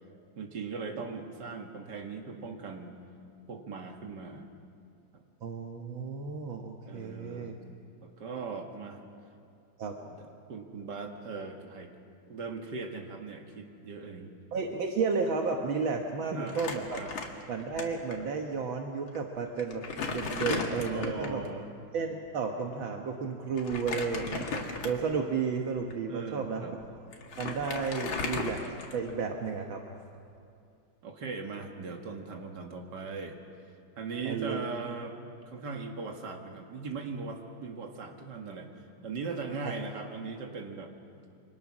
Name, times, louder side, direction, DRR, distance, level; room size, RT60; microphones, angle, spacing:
voice 1, 0.4-2.9 3.5-4.5 5.1-5.2 6.9-7.5 8.0-9.0 10.0-11.9 12.3-14.3 16.2-16.6 17.0-17.1 20.9-21.7 26.1-26.7 31.0-33.4 34.0-35.2 35.5-38.7 39.0-40.9, right 4 dB, 60° right, 3 dB, 2.4 m, -39 dB
voice 2, 5.4-7.5 9.8-10.0 14.5-17.0 17.5-21.4 21.9-27.0 27.4-28.6 28.9-29.8 34.2-34.7 39.6-39.7, right 5 dB, 75° right, 2 dB, 2.1 m, -33 dB
Crumpling crinkling, 16.5-17.8 18.1-18.2 19.1-19.2 19.6-21.4 23.6-25.2 25.8-25.9 26.8-26.9 27.1-29.2, left 4 dB, 75° left, 2.6 m, -36 dB
28.5 x 24.5 x 6.2 m, 2.4 s
omnidirectional pair, 2.2 m